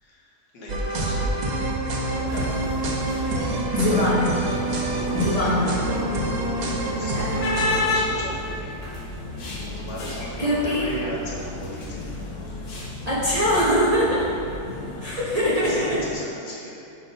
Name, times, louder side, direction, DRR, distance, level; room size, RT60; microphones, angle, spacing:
voice 1, 0.0-1.4 2.1-2.3 3.7-4.0 4.9-8.8 9.8-12.2 14.0-14.1 14.6-14.8 15.4-16.8, equal, 85° left, -5 dB, 1.7 m, -37 dB
sound 1, 0.7-7.8, right 2 dB, 85° right, 0.3 m, -26 dB
sound 2, 1.1-14.6, left 1 dB, 65° right, 1.7 m, -39 dB
sound 3, 2.1-16.1, left 3 dB, 50° left, 0.9 m, -33 dB
voice 2, 3.7-4.2 5.1-5.9 7.1-7.3 10.2-10.9 13.1-14.3 15.0-16.0, equal, 35° right, -8 dB, 0.7 m, -22 dB
5.8 x 3.7 x 5.2 m, 2.6 s
omnidirectional pair, 1.7 m